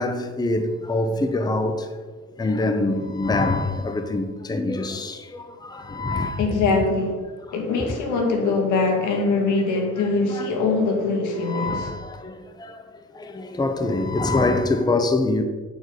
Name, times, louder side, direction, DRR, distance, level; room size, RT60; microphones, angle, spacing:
voice 1, 0.0-1.9 2.4-6.5 10.3-10.5 11.4-12.8 13.1-15.4, left 2 dB, 15° left, 0.6 m, -25 dB
voice 2, 6.4-7.2 7.5-11.9, left 3 dB, 90° left, 1.4 m, -22 dB
7.9 x 4.5 x 4.8 m
cardioid pair, 90°, 30 cm